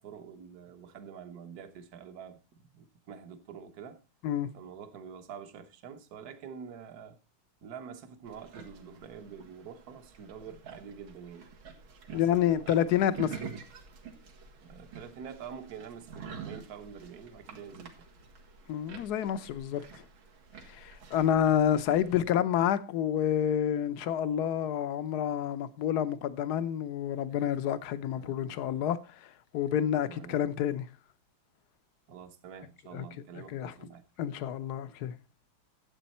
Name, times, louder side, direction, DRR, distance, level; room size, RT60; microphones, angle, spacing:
voice 1, 0.0-4.0 4.5-7.2 7.6-11.5 12.1-12.8 14.6-17.9 28.0-28.5 29.9-30.4 32.1-34.0, right 7 dB, 55° right, 1.5 m, -46 dB
sound 1, 8.3-22.2, right 6 dB, 85° right, 2.7 m, -48 dB
voice 2, 12.1-13.4 18.7-20.0 20.6-30.9 32.9-33.0 33.5-33.7 34.2-35.1, left 10 dB, 60° left, 1.1 m, -29 dB
12.5 x 8.2 x 4.2 m
omnidirectional pair, 2.2 m